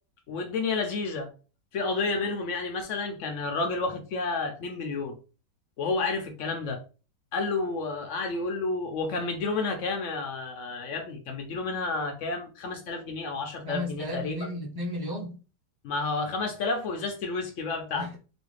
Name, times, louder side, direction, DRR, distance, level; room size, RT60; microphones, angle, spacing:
voice 1, 0.3-1.3 1.7-5.1 5.8-6.8 7.3-14.4 15.8-18.1, left 3 dB, 85° left, 0.6 m, -30 dB
voice 2, 13.6-15.4 18.0-18.2, left 1 dB, 20° right, 0.7 m, -34 dB
3.1 x 2.5 x 3.1 m
omnidirectional pair, 1.9 m